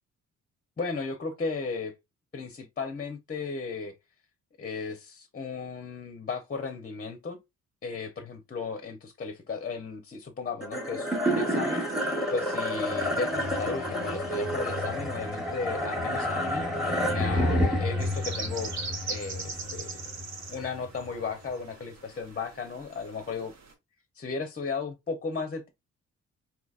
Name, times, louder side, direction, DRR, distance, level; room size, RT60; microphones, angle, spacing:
voice 1, 0.8-1.9 2.3-3.9 4.6-7.4 7.8-11.9 12.3-18.7 19.1-20.0 20.5-23.5 24.1-25.7, left 4 dB, 30° left, 0.7 m, -35 dB
sound 1, 10.6-21.1, equal, ahead, 1.2 m, -29 dB
sound 2, 18.0-23.7, right 4 dB, 60° right, 1.1 m, -40 dB
4.0 x 2.8 x 2.4 m
cardioid pair, 90°, 30 cm